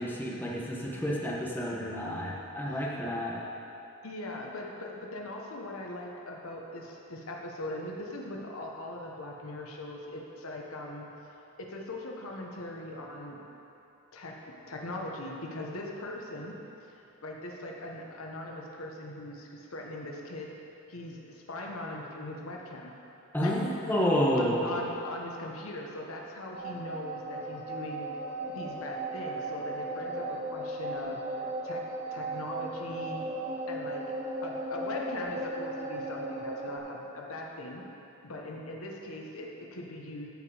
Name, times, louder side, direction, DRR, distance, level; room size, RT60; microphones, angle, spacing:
voice 1, 0.0-3.4 23.3-24.7, equal, 10° left, -5 dB, 1.2 m, -30 dB
voice 2, 4.0-11.3 11.6-13.4 14.1-16.6 16.9-20.5 20.9-22.9 23.4-23.7 24.3-28.1 28.5-33.2 33.7-34.1 34.4-37.8 38.2-40.3, left 1 dB, 80° left, -1 dB, 1.1 m, -40 dB
sound 1, 26.5-36.8, right 1 dB, 30° right, 0.8 m, -36 dB
14.0 x 5.0 x 4.9 m, 2.9 s
head